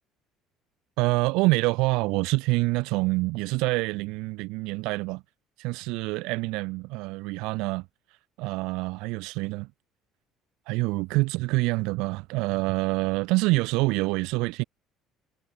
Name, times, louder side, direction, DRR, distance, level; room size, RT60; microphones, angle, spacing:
voice 1, 1.0-5.2 5.6-7.9 8.4-9.7 10.7-14.6, right 24 dB, 60° right, 0.7 m, -26 dB
figure-of-eight pair, 55°, 0 cm